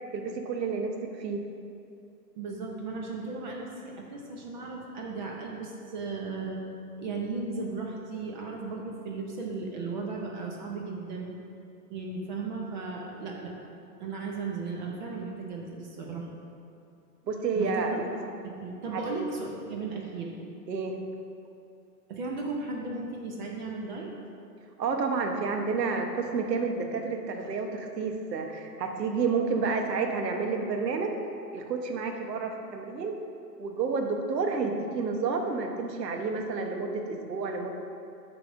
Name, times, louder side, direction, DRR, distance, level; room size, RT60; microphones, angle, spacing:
voice 1, 0.1-0.9 1.2-1.4 17.3-18.0 18.9-19.0 20.7-20.9 24.8-31.1 31.5-33.1 33.6-37.7, right 4 dB, 80° right, 4 dB, 1.1 m, -30 dB
voice 2, 2.4-6.6 7.0-11.3 11.9-13.5 14.0-16.3 17.5-18.1 18.4-20.3 22.1-24.1, right 3 dB, 30° right, 0 dB, 0.7 m, -36 dB
8.2 x 3.5 x 6.2 m, 2.6 s
hypercardioid pair, 155°, 49 cm